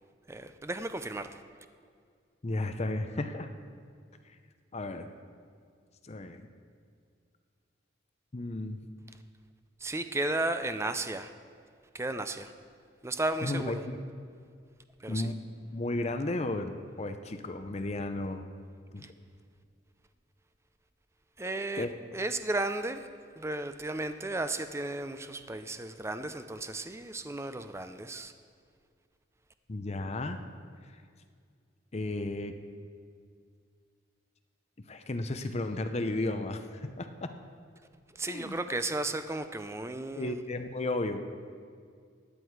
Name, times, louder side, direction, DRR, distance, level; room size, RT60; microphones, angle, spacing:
voice 1, 0.3-1.4 9.8-11.3 11.9-12.5 13.0-13.8 15.0-15.3 19.0-19.1 21.4-23.1 23.4-28.3 38.2-40.4, right 2 dB, 15° right, 10 dB, 0.5 m, -34 dB
voice 2, 2.4-3.5 4.7-5.1 6.0-6.4 8.3-8.8 13.4-14.0 15.1-15.4 15.7-18.5 18.9-19.1 21.8-21.9 29.7-30.4 31.9-32.5 34.9-37.3 38.3-38.6 40.2-41.2, left 2 dB, 35° left, 8 dB, 0.6 m, -33 dB
15.5 x 9.9 x 4.7 m, 2.1 s
head